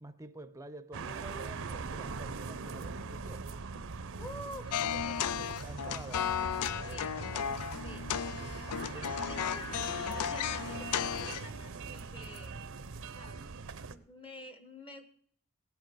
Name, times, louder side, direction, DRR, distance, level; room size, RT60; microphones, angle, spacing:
voice 1, 0.0-3.4 5.6-6.3 7.2-7.6 8.9-9.1, right 2 dB, 15° right, 0.7 m, -48 dB
sound 1, 0.9-14.0, right 4 dB, 65° right, 0.7 m, -41 dB
voice 2, 4.2-5.6 6.7-7.2 7.8-8.0 8.7-12.5 13.1-13.4 13.9-15.1, left 1 dB, 25° left, 1.1 m, -48 dB
sound 2, 4.7-11.5, left 9 dB, 85° left, 0.4 m, -35 dB
sound 3, 4.7-9.8, left 1 dB, 40° left, 2.4 m, -57 dB
16.5 x 9.2 x 4.7 m
head